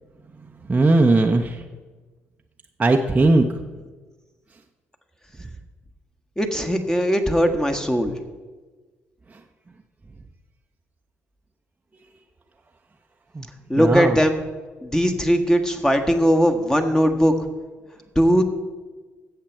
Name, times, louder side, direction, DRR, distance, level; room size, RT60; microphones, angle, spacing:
voice 1, 0.7-1.6 2.8-3.5 13.3-13.4 13.8-14.1, right 2 dB, 20° right, 3 dB, 0.8 m, -18 dB
voice 2, 6.4-8.2 13.7-14.4 14.8-17.3 18.1-18.4, equal, 10° left, 5 dB, 1.4 m, -19 dB
16.0 x 6.8 x 4.6 m, 1.3 s
figure-of-eight pair, 45°, 6 cm